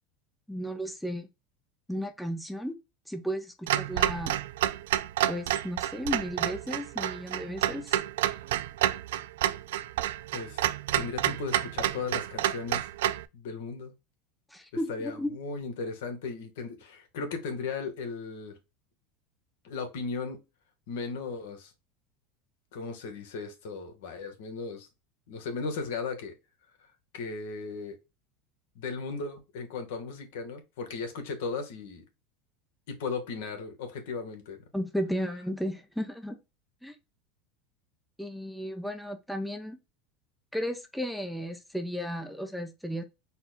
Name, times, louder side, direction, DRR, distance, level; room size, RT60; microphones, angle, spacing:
voice 1, 0.5-1.3 1.9-2.8 3.1-4.3 5.3-8.0 14.5-15.3 34.7-36.4 36.8-36.9 38.2-39.8 40.5-43.0, equal, ahead, 0.6 m, -34 dB
Clock, 3.7-13.2, right 13 dB, 85° right, 0.3 m, -29 dB
voice 2, 10.3-10.6 11.0-12.9 13.3-13.9 14.9-18.6 19.6-20.4 20.9-21.7 22.7-24.9 25.3-26.3 27.1-28.0 28.7-32.0 32.9-34.6, left 4 dB, 80° left, 1.3 m, -36 dB
4.3 x 2.3 x 4.1 m
supercardioid pair, 130°, 0 cm